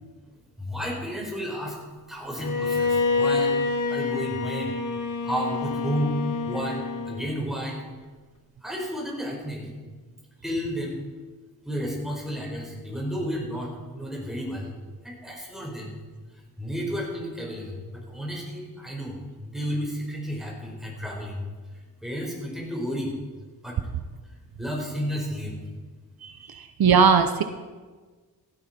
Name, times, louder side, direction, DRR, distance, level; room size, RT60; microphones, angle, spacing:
voice 1, 0.6-1.8 2.1-3.6 3.9-4.8 5.2-6.2 6.5-7.9 8.6-9.8 10.4-11.1 11.6-14.8 15.0-16.0 16.6-21.4 22.0-23.2 23.6-23.8 24.6-25.6, equal, ahead, -2 dB, 4.5 m, -32 dB
Bowed string instrument, 2.4-7.4, left 4 dB, 55° left, 1.4 m, -27 dB
voice 2, 26.2-27.4, right 6 dB, 70° right, 9 dB, 0.8 m, -20 dB
15.5 x 14.0 x 4.4 m, 1.4 s
wide cardioid pair, 130°, 38 cm